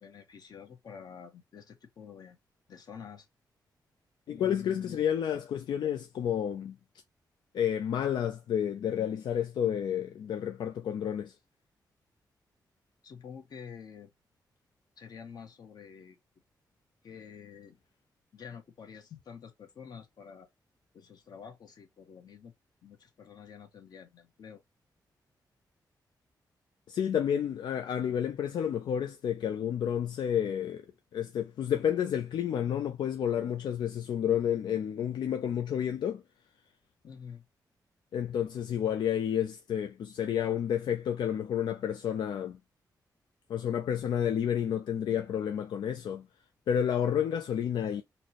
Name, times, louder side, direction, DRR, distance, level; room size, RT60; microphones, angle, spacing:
voice 1, 0.0-2.4 2.7-3.3 4.3-5.0 13.0-14.1 15.0-16.2 17.0-17.8 18.3-20.5 20.9-22.5 22.8-24.6 37.0-37.4, left 6 dB, 60° left, 0.9 m, -48 dB
voice 2, 4.3-6.7 7.5-11.3 26.9-30.8 31.1-36.2 38.1-42.6 43.5-46.2 46.7-48.0, left 9 dB, 90° left, 0.4 m, -30 dB
4.1 x 2.1 x 2.8 m
wide cardioid pair, 150°, 8 cm